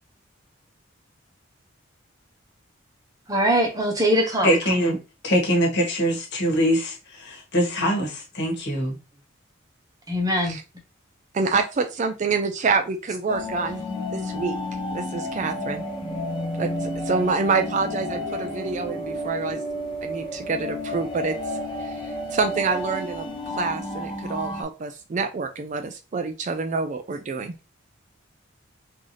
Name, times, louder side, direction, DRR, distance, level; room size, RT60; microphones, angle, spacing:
voice 1, 3.3-4.5 10.1-10.6, equal, 15° right, 0.7 m, -22 dB
voice 2, 4.4-5.0 5.2-9.0, equal, 55° left, 1.3 m, -23 dB
voice 3, 11.3-13.8 14.1-14.5 14.9-15.9 16.6-19.6 20.0-21.3 21.8-27.7, right 4 dB, 35° right, 0.3 m, -27 dB
sound 1, 13.3-24.6, left 1 dB, 20° left, 0.7 m, -31 dB
3.9 x 2.6 x 3.1 m
head